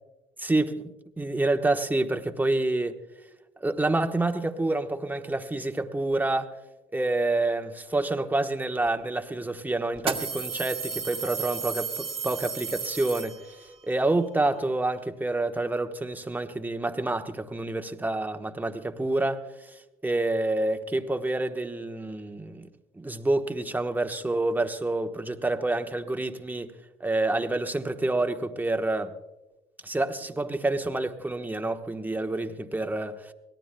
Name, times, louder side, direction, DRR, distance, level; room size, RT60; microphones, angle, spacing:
voice 1, 0.4-3.0 3.6-6.6 6.9-19.7 20.0-22.7 23.0-26.7 27.0-29.1 29.8-33.3, right 2 dB, 10° right, 1.2 m, -28 dB
sound 1, 8.9-9.0 10.0-13.8, right 6 dB, 35° right, 1.4 m, -33 dB
24.5 x 18.0 x 2.2 m
supercardioid pair, 80°, 16 cm